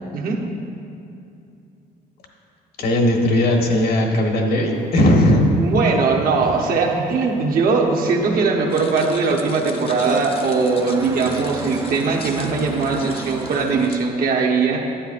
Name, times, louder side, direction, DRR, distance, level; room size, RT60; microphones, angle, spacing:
voice 1, 2.8-5.4, left 1 dB, 65° left, 1 dB, 1.3 m, -17 dB
sound 1, 4.7-13.9, right 3 dB, 20° right, 0.4 m, -35 dB
voice 2, 5.6-14.8, right 4 dB, 60° right, 0 dB, 1.1 m, -20 dB
sound 2, 8.7-14.0, left 4 dB, 35° left, 0.6 m, -39 dB
10.0 x 8.8 x 2.5 m, 2.6 s
cardioid pair, 110°, 17 cm